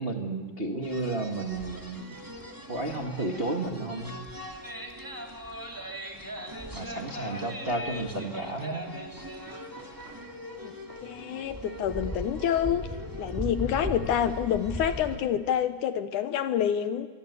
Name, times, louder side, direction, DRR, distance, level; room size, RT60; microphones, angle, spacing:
voice 1, 0.0-2.1 2.7-4.1 6.7-8.8, right 2 dB, 55° right, 2 dB, 0.6 m, -32 dB
sound 1, 0.8-15.2, equal, 10° right, 1.5 m, -39 dB
voice 2, 11.0-12.9 13.2-17.1, left 9 dB, 70° left, 10 dB, 2.0 m, -27 dB
25.0 x 24.0 x 8.3 m, 1.5 s
omnidirectional pair, 4.2 m